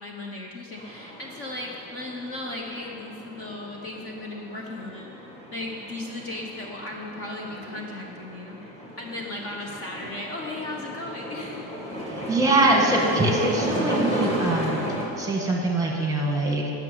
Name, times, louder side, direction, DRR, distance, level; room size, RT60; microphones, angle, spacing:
voice 1, 0.0-5.1 5.5-11.7, left 2 dB, 30° left, 0 dB, 0.9 m, -36 dB
sound 1, 0.8-15.1, equal, 15° left, 1.7 m, -34 dB
voice 2, 12.1-14.8 15.2-16.7, right 2 dB, 10° right, 0 dB, 1.4 m, -23 dB
12.0 x 6.7 x 9.5 m, 2.8 s
cardioid pair, 175°, 43 cm